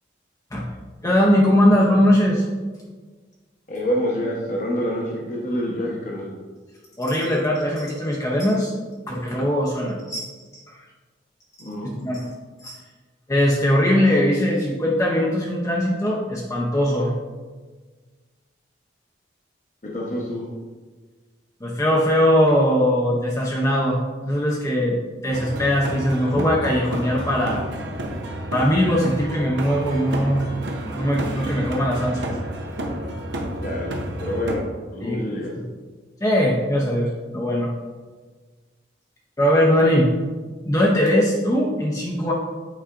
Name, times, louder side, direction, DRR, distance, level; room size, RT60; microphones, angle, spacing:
voice 1, 1.0-2.5 7.0-8.7 9.1-10.8 11.8-12.3 12.6-12.8 13.3-17.1 21.6-25.0 25.2-27.6 28.5-30.5 30.9-32.4 35.0-35.5 36.2-37.7 39.4-40.1 40.6-42.3, equal, 15° left, -4 dB, 0.6 m, -20 dB
voice 2, 3.7-6.3 11.6-11.9 19.8-20.5 33.6-34.6 34.9-35.5, equal, 40° left, -4 dB, 0.9 m, -27 dB
sound 1, 25.3-34.6, right 1 dB, 75° right, 0.8 m, -30 dB
8.4 x 4.8 x 2.5 m, 1.4 s
head